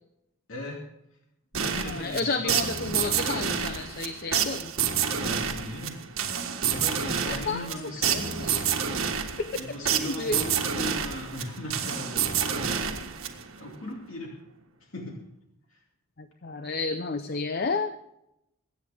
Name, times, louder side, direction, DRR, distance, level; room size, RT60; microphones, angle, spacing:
voice 1, 0.5-0.8 1.5-2.9 5.1-6.1 6.7-8.7 9.5-13.0 13.6-14.4 14.8-15.2 15.7-15.8, left 1 dB, 75° left, -1 dB, 2.6 m, -38 dB
sound 1, 1.5-13.7, right 7 dB, 85° right, 1.6 m, -29 dB
voice 2, 1.9-4.7 7.3-7.7 8.0-8.6 10.0-10.4 16.2-17.9, left 3 dB, 50° left, 9 dB, 0.7 m, -31 dB
23.0 x 9.6 x 3.6 m, 0.84 s
head